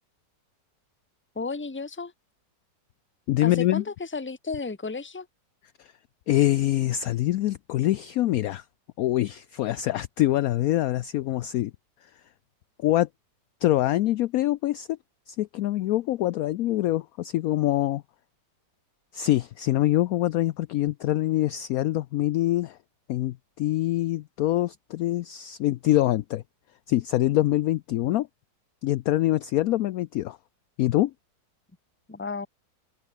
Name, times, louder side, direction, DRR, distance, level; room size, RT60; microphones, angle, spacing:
voice 1, 1.3-2.1 3.4-5.3 32.1-32.5, left 4 dB, 10° left, 0.9 m, -33 dB
voice 2, 3.3-3.8 5.8-5.9 6.3-8.6 9.0-11.7 12.8-13.1 13.6-15.0 15.3-18.0 19.1-22.8 23.1-26.4 26.9-28.3 28.8-30.4 30.8-31.1, left 15 dB, 75° left, 0.8 m, -24 dB
omnidirectional pair, 2.0 m